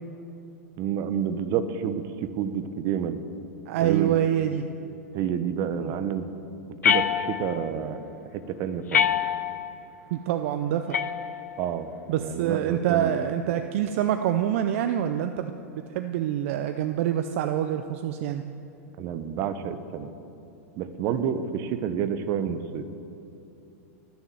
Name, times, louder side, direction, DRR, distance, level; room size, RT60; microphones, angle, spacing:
voice 1, 0.8-3.2 3.8-4.1 5.1-6.3 6.8-8.0 8.3-9.0 11.6-11.9 12.2-13.2 19.0-20.1 20.8-22.8, right 8 dB, 45° right, 10 dB, 1.1 m, -29 dB
voice 2, 3.7-4.6 5.8-5.9 10.1-11.0 12.1-18.4, right 10 dB, 60° right, 8 dB, 0.6 m, -26 dB
sound 1, 6.8-7.7 8.9-9.7 10.9-11.7, left 8 dB, 90° left, 0.7 m, -25 dB
21.0 x 7.3 x 7.8 m, 2.7 s
hypercardioid pair, 120°, 8 cm